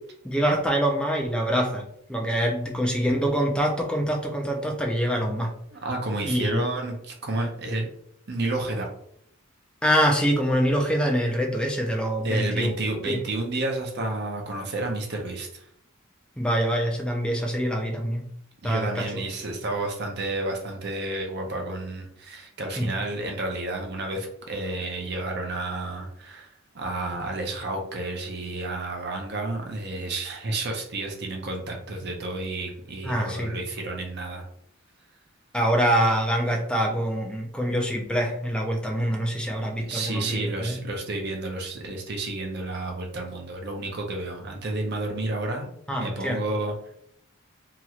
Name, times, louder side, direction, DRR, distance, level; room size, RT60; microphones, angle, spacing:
voice 1, 0.2-1.8 2.1-5.5 6.2-6.6 9.8-12.7 13.1-13.2 16.4-18.2 18.6-19.2 22.8-22.9 33.0-33.6 35.5-40.8 45.9-46.4, equal, 5° left, 0 dB, 0.5 m, -25 dB
voice 2, 5.7-7.9 8.3-8.9 12.2-15.7 18.6-26.5 26.7-34.5 39.8-45.7 46.0-46.9, right 2 dB, 55° right, 2 dB, 0.6 m, -31 dB
2.9 x 2.9 x 2.4 m, 0.70 s
head